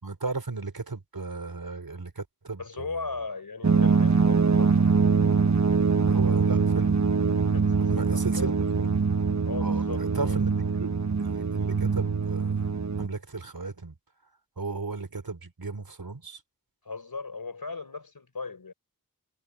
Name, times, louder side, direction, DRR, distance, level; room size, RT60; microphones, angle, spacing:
voice 1, 0.0-3.0 6.1-6.9 7.7-8.9 9.6-12.7 13.0-14.0 14.6-16.4, right 3 dB, 90° right, 4.8 m, -35 dB
voice 2, 2.6-4.8 7.5-8.5 9.5-10.4 16.8-18.7, left 4 dB, 90° left, 4.2 m, -37 dB
sound 1, 3.6-13.1, right 5 dB, 50° right, 1.1 m, -23 dB
wide cardioid pair, 50°, 35 cm